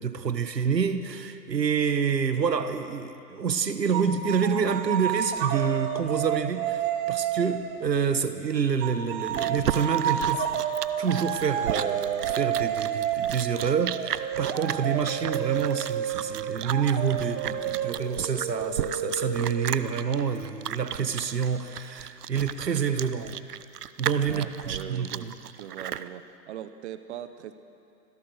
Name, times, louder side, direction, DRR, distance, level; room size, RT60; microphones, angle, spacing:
voice 1, 0.0-10.5 11.0-23.4 24.0-25.3, right 6 dB, 85° right, 10 dB, 1.5 m, -27 dB
sound 1, 3.9-7.8 8.8-20.1, right 9 dB, 25° right, 1.5 m, -30 dB
Chewing mastication, 8.8-26.1, right 10 dB, 70° right, 0.9 m, -35 dB
voice 2, 24.3-25.3 25.6-27.5, right 11 dB, 45° right, 11 dB, 1.1 m, -40 dB
26.0 x 17.0 x 6.5 m, 2.6 s
hypercardioid pair, 130°, 48 cm